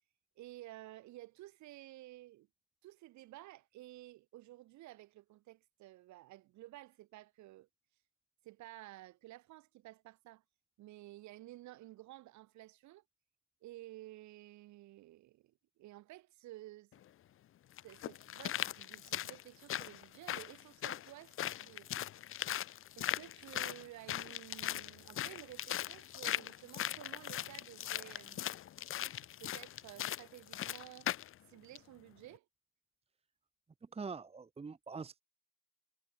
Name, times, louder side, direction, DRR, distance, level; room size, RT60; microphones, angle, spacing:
voice 1, 0.4-2.5 2.8-7.7 8.4-10.4 10.8-13.0 13.6-16.9 17.8-21.9 23.0-28.4 29.4-31.2 31.5-32.5, right 16 dB, 50° right, 3.9 m, -53 dB
sound 1, 16.9-17.0 17.8-31.3 31.7-31.8, left 12 dB, 35° left, 1.2 m, -40 dB
voice 2, 33.9-35.2, right 5 dB, 15° right, 1.9 m, -44 dB
hypercardioid pair, 95°, 38 cm